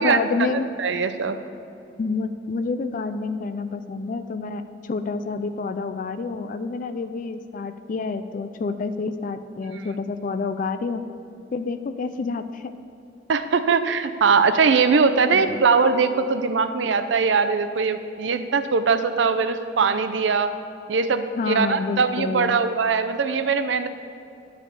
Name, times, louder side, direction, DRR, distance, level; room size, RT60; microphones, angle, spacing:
voice 1, 0.0-0.7 2.0-11.0 11.5-12.7 15.3-15.6 21.4-22.6, left 4 dB, 45° left, 9 dB, 0.4 m, -28 dB
voice 2, 0.8-1.4 13.3-20.5 20.9-23.9, right 5 dB, 90° right, 9 dB, 0.5 m, -21 dB
11.0 x 4.8 x 6.9 m, 2.6 s
head